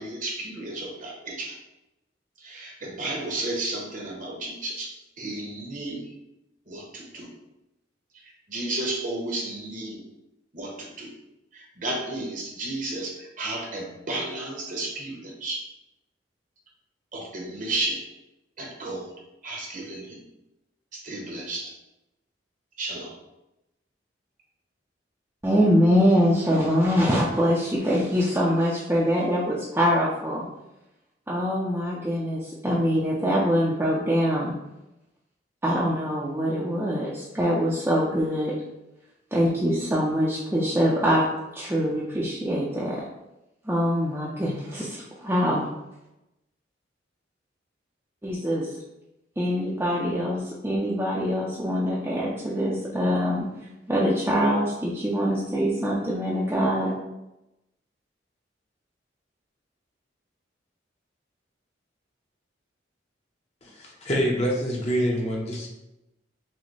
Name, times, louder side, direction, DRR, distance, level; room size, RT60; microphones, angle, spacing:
voice 1, 0.0-1.6 2.4-6.1 6.7-7.3 8.2-10.0 10.5-11.1 11.5-15.6 17.1-18.0 18.6-19.1 19.4-20.2 20.9-21.7 22.8-23.1, right 2 dB, 45° right, -1 dB, 0.9 m, -33 dB
voice 2, 25.4-30.4 31.3-34.5 35.6-38.5 39.3-41.2 41.5-43.0 43.6-45.6 48.2-48.7 49.4-53.5 53.9-56.9, equal, 10° right, -6 dB, 0.5 m, -24 dB
voice 3, 63.6-65.7, equal, 35° left, -2 dB, 0.8 m, -26 dB
6.1 x 2.1 x 3.2 m, 0.92 s
head